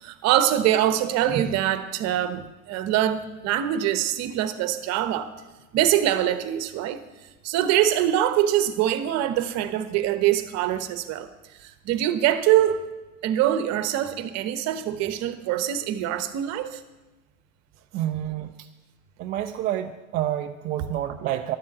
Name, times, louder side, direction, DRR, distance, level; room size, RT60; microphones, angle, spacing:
voice 1, 0.0-5.3 5.7-7.0 7.4-11.3 11.6-12.8 13.2-16.8, right 11 dB, 35° right, 12 dB, 1.1 m, -24 dB
voice 2, 17.9-18.5 19.2-21.5, right 12 dB, 20° right, 5 dB, 0.4 m, -28 dB
12.0 x 7.4 x 7.3 m, 1.1 s
hypercardioid pair, 95°, 43 cm